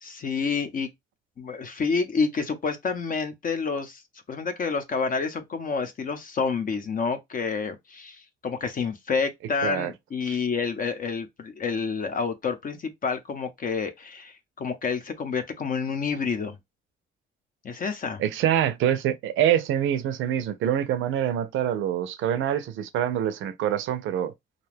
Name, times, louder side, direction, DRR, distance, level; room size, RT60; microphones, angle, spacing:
voice 1, 0.0-0.9 1.4-4.0 4.3-16.6 17.6-18.2, left 5 dB, 45° left, 0.6 m, -29 dB
voice 2, 9.6-9.9 10.3-10.4 18.2-24.3, right 10 dB, 80° right, 0.5 m, -25 dB
2.5 x 2.3 x 3.3 m
cardioid pair, 90°, 20 cm